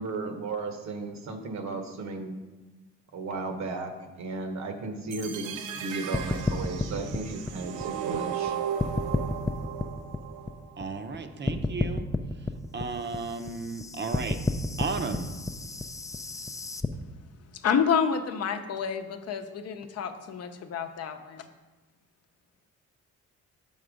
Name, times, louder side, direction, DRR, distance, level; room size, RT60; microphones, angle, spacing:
voice 1, 0.0-2.4 3.1-3.9 4.2-8.5, right 3 dB, 65° right, 5 dB, 1.1 m, -34 dB
sound 1, 5.1-11.1, right 9 dB, 85° right, 0.7 m, -36 dB
sound 2, 6.1-8.5 8.8-11.2 11.5-16.9, left 2 dB, 10° left, 0.4 m, -31 dB
voice 2, 10.8-12.1 12.7-14.4 14.8-15.3, right 4 dB, 35° right, 8 dB, 0.7 m, -34 dB
voice 3, 17.6-21.5, left 7 dB, 55° left, 7 dB, 0.7 m, -29 dB
5.9 x 5.5 x 5.0 m, 1.2 s
cardioid pair, 90°, 30 cm